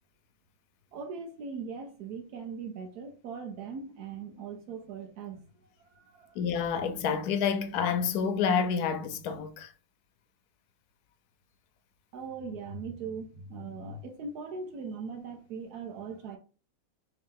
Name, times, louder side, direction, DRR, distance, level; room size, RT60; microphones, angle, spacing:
voice 1, 0.9-6.4 12.1-16.4, right 5 dB, 90° right, 1.2 m, -40 dB
voice 2, 6.4-9.7, left 6 dB, 85° left, 1.2 m, -28 dB
3.4 x 2.9 x 3.6 m
omnidirectional pair, 1.6 m